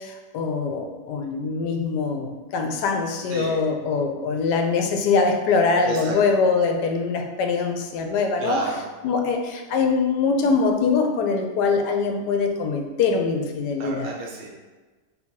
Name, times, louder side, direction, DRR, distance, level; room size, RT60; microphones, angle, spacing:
voice 1, 0.0-8.6 9.0-14.1, left 4 dB, 75° left, 4 dB, 1.1 m, -23 dB
voice 2, 3.3-3.6 5.8-6.2 8.4-8.8 13.8-14.5, right 3 dB, 90° right, -2 dB, 1.5 m, -30 dB
3.7 x 2.8 x 4.5 m, 1.3 s
omnidirectional pair, 1.9 m